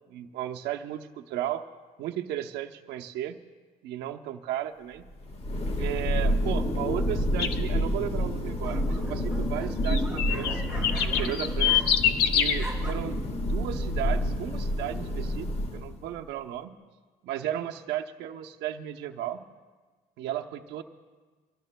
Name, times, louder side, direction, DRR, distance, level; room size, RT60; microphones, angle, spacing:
voice 1, 0.0-1.7 2.0-3.4 3.8-5.1 5.8-10.7 11.0-11.9 12.3-13.2 13.5-16.8 17.2-19.5 20.2-20.8, right 12 dB, 85° right, 6 dB, 0.8 m, -35 dB
Thunder, 5.1-16.1, equal, 35° left, 1.5 m, -29 dB
sound 1, 7.0-7.4 8.3-12.2 12.4-12.9, right 2 dB, 5° right, 2.4 m, -43 dB
sound 2, 7.4-7.6 9.8-12.6, left 9 dB, 70° left, 1.0 m, -24 dB
24.5 x 18.0 x 2.2 m, 1.4 s
cardioid pair, 110°, 17 cm